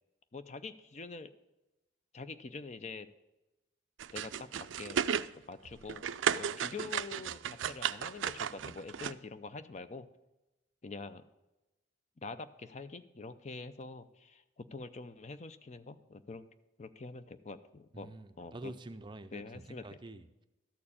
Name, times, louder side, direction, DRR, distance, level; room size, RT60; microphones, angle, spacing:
voice 1, 0.3-1.3 2.1-3.1 4.1-5.1 5.4-6.1 6.4-10.1 10.8-11.2 12.2-16.5 16.8-18.1 18.4-18.7 19.3-19.9, left 3 dB, 35° left, 11 dB, 0.5 m, -45 dB
sound 1, 4.0-5.3 5.7-9.1, right 8 dB, 85° right, 0.4 m, -34 dB
voice 2, 17.9-20.4, right 2 dB, 25° right, 9 dB, 0.5 m, -47 dB
13.0 x 4.5 x 8.5 m, 1.0 s
head